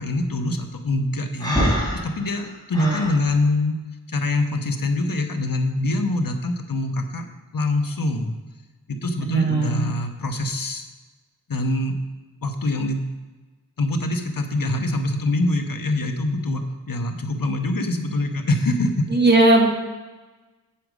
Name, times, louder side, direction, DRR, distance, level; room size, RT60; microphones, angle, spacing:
voice 1, 0.0-1.6 1.9-3.7 4.1-7.3 7.5-8.3 8.9-10.8 11.5-11.9 12.4-13.0 13.8-16.6 16.9-19.1, left 2 dB, 75° left, 5 dB, 1.1 m, -24 dB
Breathing, 1.4-3.1, equal, 10° left, 3.7 m, -24 dB
voice 2, 9.2-9.9 19.1-19.6, right 2 dB, 30° right, 0 dB, 2.0 m, -18 dB
8.8 x 7.9 x 5.0 m, 1.2 s
wide cardioid pair, 50°, 34 cm